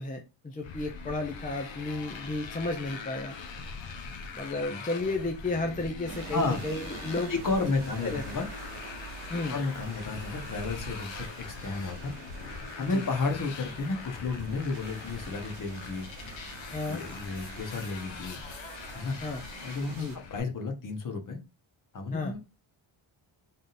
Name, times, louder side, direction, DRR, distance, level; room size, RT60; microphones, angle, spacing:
voice 1, 0.0-3.4 4.3-7.3 8.0-8.2 9.3-9.6 12.8-13.0 16.7-17.0 19.2-19.4 19.9-20.2 22.1-22.3, left 2 dB, 20° left, 3 dB, 0.4 m, -33 dB
Motorcycle, 0.6-20.4, left 5 dB, 65° left, 0.9 m, -42 dB
sound 1, 6.1-20.2, right 6 dB, 90° right, 1.0 m, -47 dB
voice 2, 6.3-6.6 7.3-8.5 9.5-12.1 12.5-16.1 16.9-18.4 18.9-19.2 19.6-21.4 21.9-22.4, left 3 dB, 40° left, 4 dB, 1.0 m, -32 dB
Bird, 10.1-12.9 13.4-13.6 13.8-14.1 14.9-15.0, right 3 dB, 35° right, 0.6 m, -47 dB
4.0 x 3.6 x 2.5 m, 0.27 s
cardioid pair, 145°, 50 cm